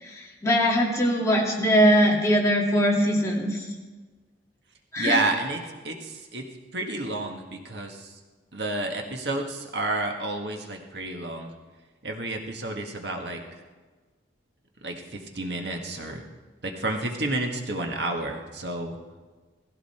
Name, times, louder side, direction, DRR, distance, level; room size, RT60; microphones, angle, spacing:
voice 1, 0.4-3.6 4.9-5.2, equal, 15° left, -2 dB, 2.4 m, -21 dB
voice 2, 5.0-6.5 6.7-8.2 8.5-11.5 12.0-13.4 14.8-16.2 16.6-19.0, right 2 dB, 65° right, 2 dB, 1.7 m, -30 dB
19.0 x 15.5 x 4.4 m, 1.3 s
head